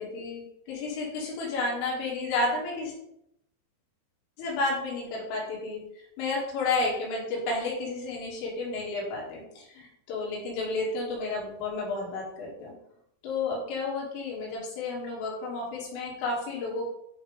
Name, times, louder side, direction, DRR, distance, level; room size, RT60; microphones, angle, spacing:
voice 1, 0.0-2.9 4.4-12.7 13.2-16.9, left 3 dB, 75° left, -4 dB, 4.6 m, -31 dB
10.5 x 6.0 x 3.3 m, 0.80 s
omnidirectional pair, 5.9 m